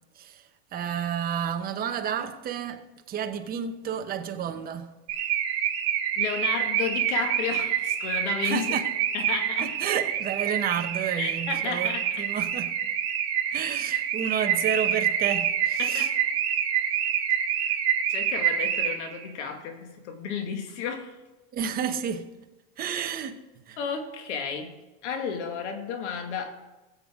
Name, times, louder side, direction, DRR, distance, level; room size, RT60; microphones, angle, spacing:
voice 1, 0.7-4.9 8.4-8.9 9.6-12.7 13.5-16.1 21.5-22.3 22.8-23.4 23.7-23.8, right 8 dB, 25° right, 0.9 m, -31 dB
Car / Alarm, 5.1-19.2, right 9 dB, 45° right, 1.6 m, -27 dB
voice 2, 6.1-8.8 9.1-9.8 11.2-12.0 15.8-16.1 17.6-17.8 18.1-21.2 22.9-23.0 23.8-24.8 25.0-26.6, left 6 dB, 85° left, 2.1 m, -33 dB
20.0 x 7.9 x 3.7 m
supercardioid pair, 150°, 34 cm